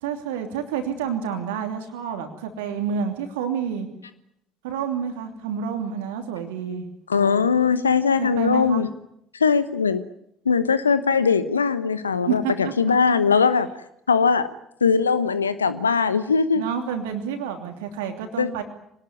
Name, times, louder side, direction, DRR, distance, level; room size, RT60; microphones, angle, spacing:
voice 1, 0.0-3.9 4.6-6.9 8.2-8.8 12.3-13.0 16.5-18.6, right 7 dB, 65° right, 5 dB, 2.9 m, -29 dB
voice 2, 7.1-8.9 9.4-10.0 10.4-13.7 14.1-14.5 14.8-16.6 18.4-18.5, left 5 dB, 80° left, 14 dB, 1.1 m, -20 dB
25.0 x 19.0 x 9.6 m, 0.76 s
figure-of-eight pair, 55°, 0 cm